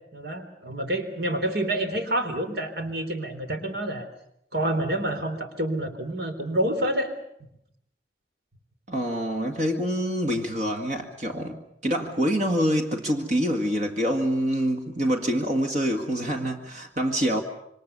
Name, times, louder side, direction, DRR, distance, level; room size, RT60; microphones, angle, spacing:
voice 1, 0.1-4.0 4.5-7.1, right 1 dB, 60° right, 7 dB, 3.6 m, -28 dB
voice 2, 8.9-17.4, equal, 40° right, 4 dB, 2.0 m, -26 dB
27.5 x 24.5 x 6.8 m, 0.77 s
head